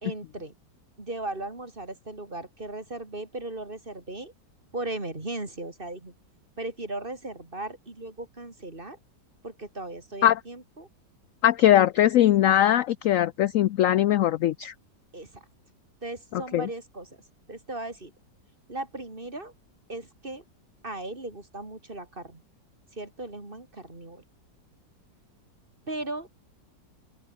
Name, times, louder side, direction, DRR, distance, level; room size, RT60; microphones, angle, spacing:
voice 1, 0.0-0.5 1.0-4.3 4.7-6.1 6.6-9.0 9.4-10.9 15.1-15.5 16.0-17.2 17.5-18.1 18.7-19.5 19.9-20.4 20.8-22.4 22.9-24.2 25.9-26.3, right 2 dB, 30° right, 3.9 m, -37 dB
voice 2, 11.4-14.7 16.3-16.7, left 12 dB, 70° left, 0.7 m, -21 dB
open air
omnidirectional pair, 1.9 m